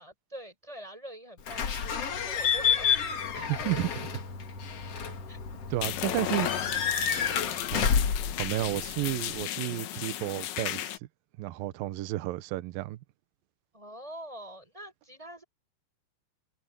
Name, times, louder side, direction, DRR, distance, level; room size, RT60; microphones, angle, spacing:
voice 1, 0.0-3.1 5.3-5.4 5.9-8.2 13.7-15.4, right 1 dB, 5° right, 6.4 m, -46 dB
Slam / Squeak / Alarm, 1.5-9.4, left 7 dB, 55° left, 1.8 m, -30 dB
voice 2, 3.4-4.1 5.7-6.5 7.7-7.8 8.4-11.0 11.4-13.0, right 16 dB, 80° right, 2.1 m, -32 dB
sound 1, 5.8-11.0, left 14 dB, 75° left, 3.4 m, -34 dB
omnidirectional pair, 5.5 m